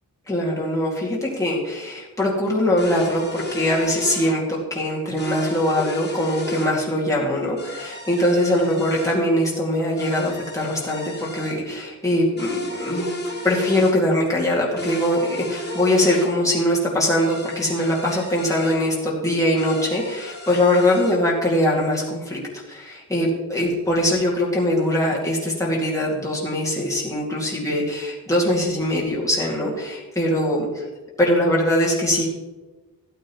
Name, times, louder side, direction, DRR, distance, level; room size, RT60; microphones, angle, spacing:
voice 1, 0.3-13.1 13.4-22.4 22.7-30.9 31.2-32.3, left 1 dB, 10° left, -5 dB, 2.3 m, -22 dB
sound 1, 2.8-4.4 5.2-6.7 7.6-9.2 10.0-11.6 12.4-13.9 14.8-16.3 17.2-18.8 19.6-21.2, left 1 dB, 30° left, 2.1 m, -33 dB
14.5 x 9.1 x 3.1 m, 1.2 s
wide cardioid pair, 150°, 36 cm